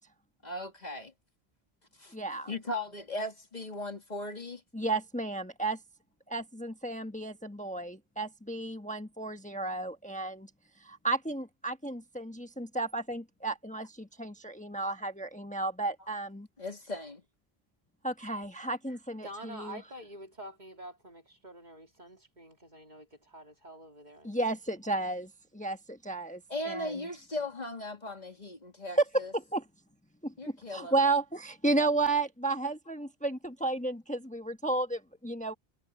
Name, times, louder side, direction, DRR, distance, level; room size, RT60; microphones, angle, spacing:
voice 1, 0.4-1.1 2.0-2.1 2.5-4.6 16.6-17.2 26.5-29.3 30.4-30.9, left 1 dB, 40° left, 2.3 m, -37 dB
voice 2, 2.1-2.6 4.7-5.8 6.3-7.9 8.2-10.5 10.8-16.5 18.0-19.8 24.2-26.9 29.0-29.6 30.2-30.3 30.7-35.5, right 2 dB, 5° left, 1.2 m, -32 dB
voice 3, 19.2-24.5, right 1 dB, 45° right, 3.1 m, -47 dB
omnidirectional pair, 1.1 m